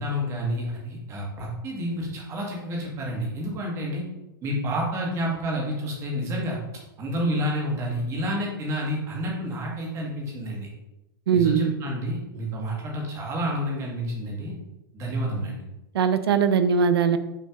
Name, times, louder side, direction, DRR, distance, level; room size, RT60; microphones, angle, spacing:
voice 1, 0.0-4.0 4.4-6.6 7.0-10.7 11.3-14.5 14.9-15.6, equal, 25° right, -2 dB, 1.7 m, -29 dB
voice 2, 11.3-11.7 15.9-17.2, right 6 dB, 90° right, 11 dB, 0.6 m, -20 dB
6.1 x 4.5 x 3.7 m, 0.94 s
supercardioid pair, 155°, 13 cm